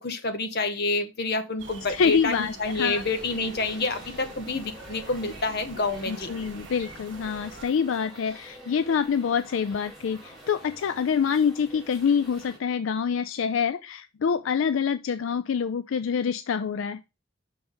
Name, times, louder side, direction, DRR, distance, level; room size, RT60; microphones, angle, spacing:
voice 1, 0.0-6.3, left 3 dB, 55° left, 1.0 m, -28 dB
sound 1, 1.6-7.7, right 3 dB, 70° right, 1.1 m, -45 dB
voice 2, 1.9-3.0 6.1-17.1, left 6 dB, 80° left, 0.4 m, -26 dB
sound 2, 2.6-12.6, right 1 dB, ahead, 2.4 m, -47 dB
5.9 x 4.0 x 5.0 m
head